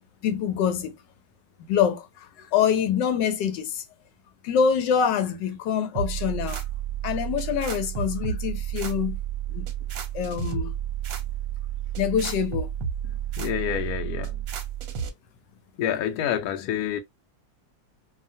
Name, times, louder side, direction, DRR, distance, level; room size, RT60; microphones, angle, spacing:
voice 1, 0.2-0.9 1.7-3.8 4.4-6.6 7.0-9.2 9.5-9.7 10.1-10.7 12.0-12.7, left 8 dB, 90° left, 1.3 m, -25 dB
sound 1, 5.9-15.1, right 9 dB, 65° right, 0.9 m, -31 dB
voice 2, 13.4-14.4 15.8-17.0, left 10 dB, 65° left, 1.0 m, -28 dB
2.8 x 2.4 x 2.6 m
omnidirectional pair, 1.9 m